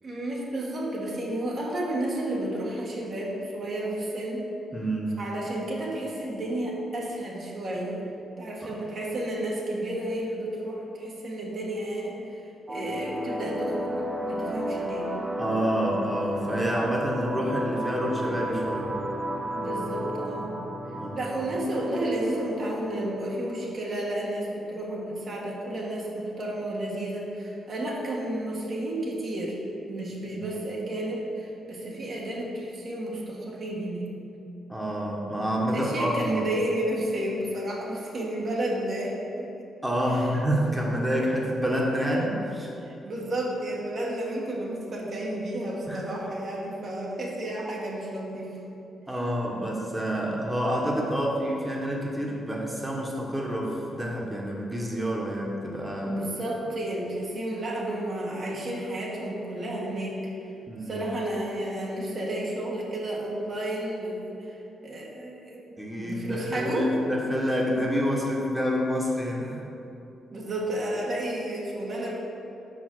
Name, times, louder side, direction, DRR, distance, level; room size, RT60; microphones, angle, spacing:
voice 1, 0.0-4.4 5.2-8.0 8.4-13.9 14.3-15.1 19.5-20.5 21.1-29.6 29.9-34.0 35.7-39.5 40.1-40.3 42.8-48.6 56.0-60.3 60.8-65.6 66.0-67.0 70.3-72.2, right 1 dB, 55° right, -3 dB, 1.5 m, -32 dB
voice 2, 4.7-5.2 8.6-8.7 15.4-19.0 21.0-21.2 34.7-36.4 39.8-42.7 45.9-46.1 49.1-56.2 60.7-61.1 65.8-69.7, equal, 10° right, -2 dB, 1.2 m, -28 dB
sound 1, 12.7-23.7, equal, 30° right, 1.1 m, -33 dB
5.0 x 5.0 x 6.3 m, 2.9 s
supercardioid pair, 60°, 0 cm